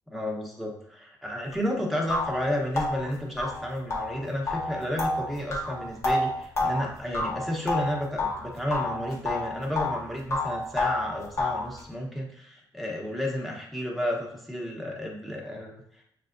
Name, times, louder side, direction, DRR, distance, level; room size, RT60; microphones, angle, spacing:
voice 1, 0.1-16.0, equal, ahead, -3 dB, 1.0 m, -32 dB
sound 1, 1.5-1.6 2.1-8.4 8.7-10.0 10.3-11.7, left 2 dB, 35° left, 0.9 m, -29 dB
6.3 x 3.3 x 2.6 m, 0.75 s
wide cardioid pair, 165°, 8 cm